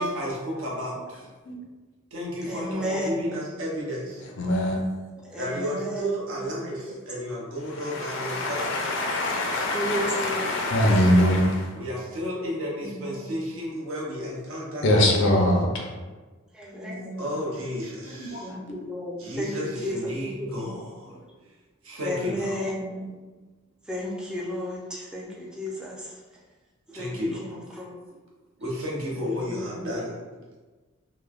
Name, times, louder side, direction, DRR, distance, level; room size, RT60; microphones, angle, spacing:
voice 1, 0.0-1.3 2.1-4.2 5.3-9.0 11.7-15.1 17.2-18.5 19.2-21.1 21.8-22.6 26.9-27.6 28.6-30.2, equal, 80° right, -4 dB, 0.8 m, -32 dB
voice 2, 2.4-3.4 5.2-6.2 9.7-11.2 12.8-13.4 16.5-17.4 18.4-20.8 21.1-21.2 22.0-23.1 23.9-26.2 26.9-28.0 29.3-29.9, equal, 5° right, -5 dB, 0.4 m, -33 dB
voice 3, 4.4-4.8 7.8-11.7 14.8-15.9 18.1-18.6, left 1 dB, 60° left, 0 dB, 0.4 m, -23 dB
3.1 x 2.1 x 2.3 m, 1.3 s
head